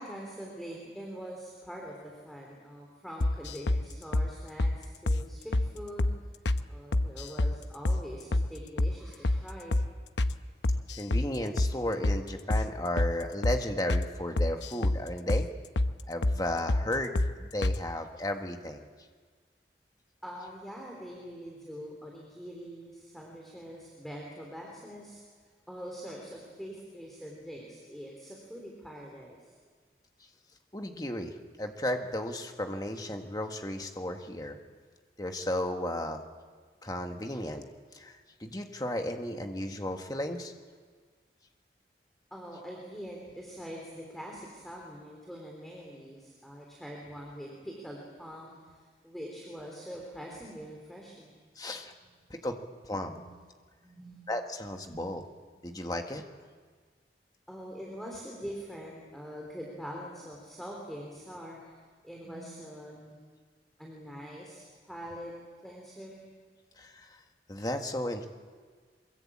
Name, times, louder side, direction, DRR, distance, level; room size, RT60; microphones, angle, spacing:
voice 1, 0.0-6.1 6.7-9.8 20.2-25.2 25.7-29.5 42.3-51.4 53.1-53.3 53.8-54.3 54.9-55.1 55.6-55.7 57.5-61.7 62.0-63.2 63.8-65.3 65.6-66.3, equal, ahead, -1 dB, 3.4 m, -44 dB
sound 1, 3.2-3.8 4.1-4.3 4.6-4.8 5.1-5.2 5.5-5.7 6.0-6.2 6.5-6.6 6.9-7.6 7.9-8.0 8.3-8.5 8.8-8.9 9.2-9.4 9.7-9.9 10.2-10.3 10.6-11.3 11.6-11.7 12.0-12.2 12.5-12.7 13.0-13.1 13.4-13.6 13.9-14.1 14.4-15.0 15.3-15.5 15.8-15.9 16.2-16.4 16.7-16.9 17.2-17.3 17.6-17.8, left 1 dB, 85° left, 0.9 m, -26 dB
voice 2, 11.0-15.5 16.1-18.8 30.7-34.6 35.2-36.2 36.8-37.6 37.9-40.5 51.5-51.9 52.3-52.6 52.8-53.2 54.3-55.2 55.6-56.2 66.8-67.2 67.5-68.2, left 1 dB, 20° left, 4 dB, 1.6 m, -34 dB
23.5 x 22.0 x 8.7 m, 1.5 s
head